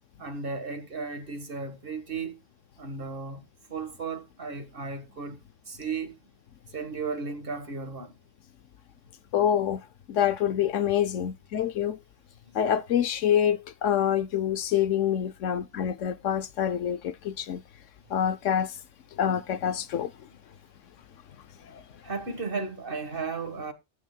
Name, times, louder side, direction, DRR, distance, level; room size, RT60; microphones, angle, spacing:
voice 1, 0.2-2.4 2.8-3.4 3.7-5.4 5.7-6.2 6.7-8.2 12.5-12.6 22.0-23.7, right 4 dB, 45° right, 1.8 m, -35 dB
voice 2, 9.3-9.8 10.1-12.0 12.5-17.6 18.1-18.7 19.2-20.1 21.7-21.8, left 9 dB, 75° left, 1.1 m, -26 dB
16.0 x 9.1 x 2.3 m
omnidirectional pair, 1.3 m